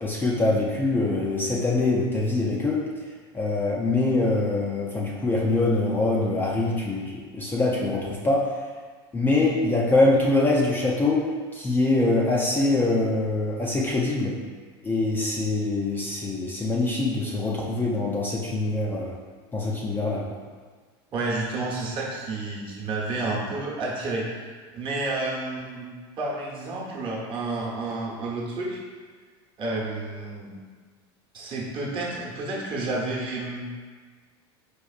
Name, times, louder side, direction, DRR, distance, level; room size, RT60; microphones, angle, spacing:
voice 1, 0.0-2.9 3.3-8.5 9.1-14.4 14.8-19.2 19.5-20.3, left 2 dB, 15° left, -3 dB, 0.4 m, -24 dB
voice 2, 21.1-25.9 26.2-28.8 29.6-30.5 31.3-33.7, right 2 dB, 40° right, -4 dB, 0.9 m, -30 dB
4.7 x 2.5 x 2.4 m, 1.5 s
supercardioid pair, 115°, 13 cm